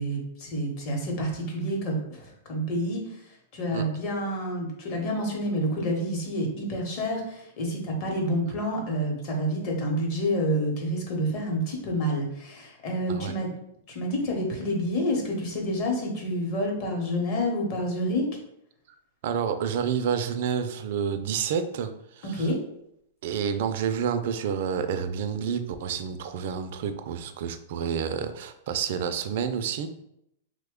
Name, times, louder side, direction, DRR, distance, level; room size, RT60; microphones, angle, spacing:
voice 1, 0.0-3.0 3.5-13.5 13.9-18.3 22.2-22.6, equal, 40° left, 0 dB, 0.8 m, -28 dB
voice 2, 19.2-22.5 23.2-29.9, right 7 dB, 55° right, 8 dB, 0.3 m, -29 dB
3.0 x 2.1 x 3.6 m, 0.77 s
supercardioid pair, 160°, 0 cm